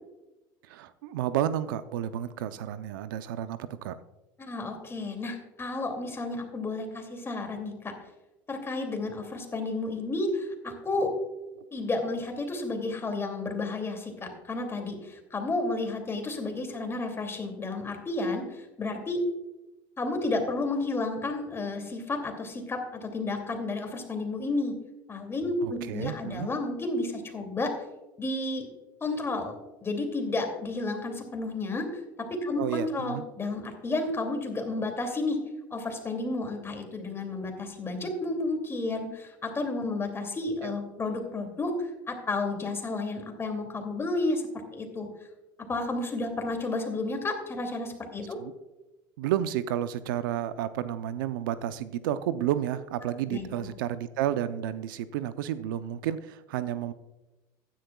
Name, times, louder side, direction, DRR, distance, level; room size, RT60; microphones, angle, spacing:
voice 1, 0.7-4.0 25.6-26.5 32.6-33.2 40.6-40.7 48.3-48.5 49.2-56.9, right 11 dB, 85° right, 13 dB, 0.6 m, -31 dB
voice 2, 4.4-7.9 8.5-11.1 11.7-19.2 20.0-24.7 25.1-27.7 28.2-28.6 29.0-29.5 29.8-31.9 32.4-35.4 35.7-44.4 44.7-45.1 45.7-48.4 53.3-53.7, left 2 dB, 20° left, 4 dB, 2.5 m, -31 dB
15.0 x 10.5 x 2.3 m, 1.0 s
supercardioid pair, 100°, 11 cm